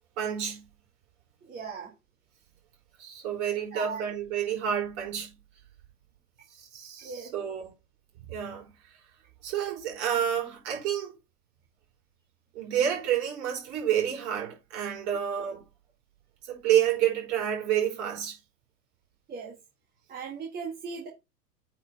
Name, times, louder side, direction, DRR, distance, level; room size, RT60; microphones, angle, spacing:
voice 1, 0.2-0.6 3.0-5.3 6.5-7.7 8.1-9.0 9.4-11.1 12.5-15.6 16.4-18.4, right 10 dB, 45° right, 5.0 m, -29 dB
voice 2, 1.5-1.9 3.7-4.0 7.0-7.3 19.3-19.6 20.1-21.1, right 5 dB, 20° right, 1.8 m, -38 dB
8.8 x 4.8 x 3.4 m
figure-of-eight pair, 105°, 48 cm